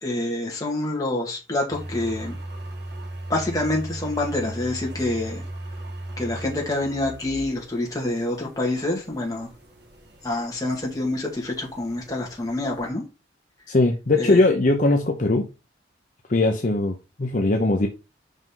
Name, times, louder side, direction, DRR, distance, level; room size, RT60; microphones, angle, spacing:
voice 1, 0.0-2.4 3.3-5.4 6.2-9.5 10.2-13.0 14.2-14.4, left 2 dB, 20° left, 2.0 m, -27 dB
sound 1, 1.7-12.9, right 1 dB, 65° right, 2.0 m, -38 dB
voice 2, 13.7-15.5 16.3-17.9, left 2 dB, 45° left, 0.7 m, -20 dB
5.3 x 5.1 x 3.8 m
head